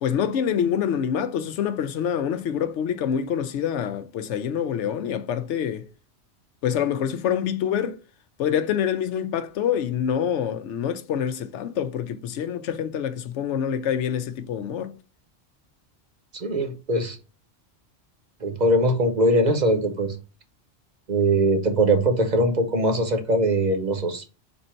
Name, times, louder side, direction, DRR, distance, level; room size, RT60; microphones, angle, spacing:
voice 1, 0.0-5.9 6.6-8.0 8.4-15.0, left 8 dB, 85° left, 0.9 m, -26 dB
voice 2, 16.3-17.2 18.4-20.2 21.1-24.2, right 1 dB, 45° right, 0.9 m, -21 dB
4.4 x 2.6 x 4.3 m
omnidirectional pair, 1.2 m